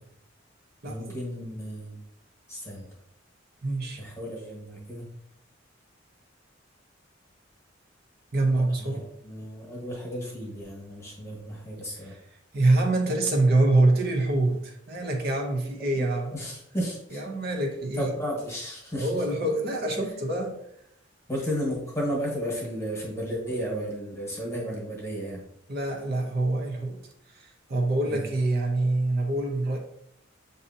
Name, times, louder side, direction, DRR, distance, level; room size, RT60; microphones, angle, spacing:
voice 1, 0.8-2.0 2.5-2.9 4.0-5.1 8.5-12.1 15.8-17.2 17.9-19.2 21.3-25.4 28.0-28.3, equal, 15° left, -2 dB, 1.2 m, -33 dB
voice 2, 3.6-4.0 8.3-9.0 12.0-12.2 12.5-16.3 17.1-18.1 18.9-20.6 25.7-27.0 27.3-29.8, right 2 dB, 50° right, 2 dB, 0.7 m, -25 dB
6.3 x 2.7 x 2.7 m, 0.75 s
head